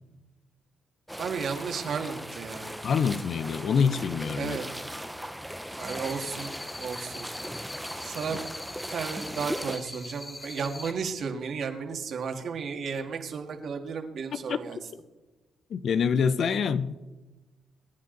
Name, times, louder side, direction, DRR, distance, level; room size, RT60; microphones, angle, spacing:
sound 1, 1.1-9.8, equal, ahead, 0.7 m, -38 dB
voice 1, 1.2-2.7 4.4-4.7 5.8-6.5 6.8-7.3 8.0-8.4 8.9-14.8, right 5 dB, 60° right, 4 dB, 2.2 m, -33 dB
voice 2, 2.8-4.6 14.5-14.6 15.7-16.9, left 6 dB, 60° left, 13 dB, 0.8 m, -25 dB
sound 2, 5.8-10.9, left 2 dB, 20° left, 3.3 m, -42 dB
26.0 x 9.9 x 4.0 m, 1.1 s
cardioid pair, 90°, 0 cm